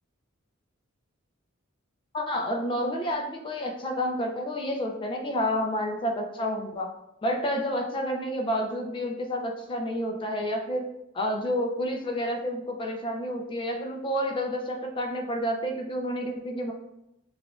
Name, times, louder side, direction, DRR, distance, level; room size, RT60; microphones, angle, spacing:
voice 1, 2.1-6.9 7.2-10.9 11.1-16.7, equal, 25° left, 3 dB, 0.4 m, -29 dB
6.9 x 2.3 x 2.4 m, 0.86 s
head